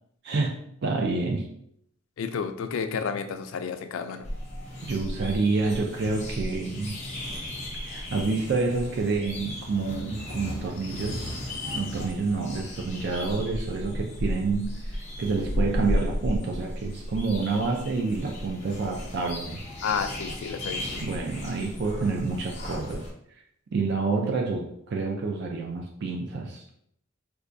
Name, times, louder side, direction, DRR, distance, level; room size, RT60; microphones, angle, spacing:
voice 1, 0.2-0.6 0.8-1.5 4.9-7.0 7.7-11.3 11.7-19.6 21.0-23.1 23.7-26.7, right 3 dB, 55° right, 1 dB, 0.4 m, -28 dB
voice 2, 2.2-4.3 19.8-21.0, left 6 dB, 75° left, 8 dB, 0.3 m, -31 dB
sound 1, 4.2-23.1, left 1 dB, 35° left, 0.8 m, -34 dB
4.4 x 2.3 x 2.5 m, 0.72 s
head